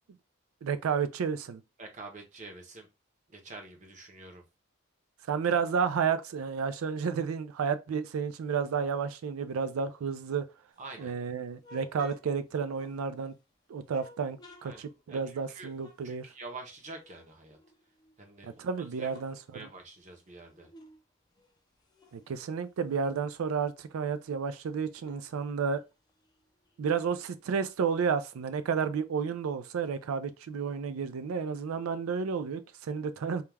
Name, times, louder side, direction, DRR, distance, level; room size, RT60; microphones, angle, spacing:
voice 1, 0.6-1.6 5.3-10.5 11.0-13.3 13.7-16.3 18.4-19.7 22.1-25.8 26.8-33.4, right 6 dB, 85° right, 0.4 m, -31 dB
voice 2, 1.8-2.9 3.3-4.4 10.8-11.1 14.6-14.8 15.1-15.2 15.5-15.7 16.0-17.6 18.2-18.5 19.0-19.1 19.5-20.7, right 3 dB, 35° right, 0.6 m, -46 dB
sound 1, 10.7-13.4 13.8-16.7 17.0-18.4 18.7-21.0 21.3-23.9 24.2-24.3 24.6-28.0, left 1 dB, 20° left, 0.4 m, -57 dB
2.3 x 2.2 x 3.1 m
head